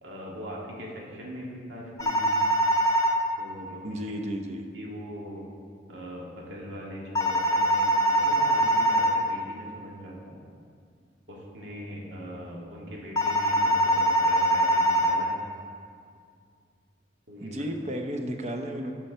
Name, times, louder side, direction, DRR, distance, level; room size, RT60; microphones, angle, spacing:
voice 1, 0.0-2.4 3.4-4.0 4.7-5.5 5.9-10.4 11.3-15.4 17.3-17.5, equal, 80° right, -3 dB, 1.8 m, -40 dB
sound 1, 2.0-3.1 7.1-9.1 13.2-15.1, right 1 dB, 20° left, 0.6 m, -23 dB
voice 2, 3.8-4.7 17.4-18.9, equal, 35° right, 4 dB, 0.7 m, -33 dB
11.5 x 4.5 x 6.6 m, 2.2 s
head